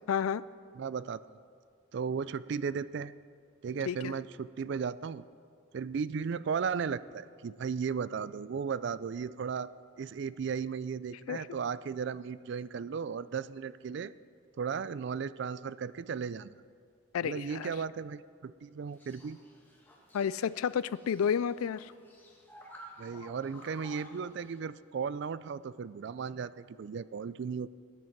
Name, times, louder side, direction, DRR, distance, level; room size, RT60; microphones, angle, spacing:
voice 1, 0.1-0.4 3.9-4.1 11.3-11.5 17.1-17.7 20.1-21.9, left 7 dB, 85° left, 18 dB, 0.3 m, -31 dB
voice 2, 0.8-1.2 1.9-3.1 3.6-5.2 5.7-9.7 10.0-14.1 14.6-16.5 17.2-19.4 23.0-27.7, right 6 dB, 55° right, 17 dB, 0.3 m, -35 dB
sound 1, 18.9-24.6, equal, 10° left, 1.7 m, -54 dB
18.5 x 10.0 x 4.6 m, 2.2 s
head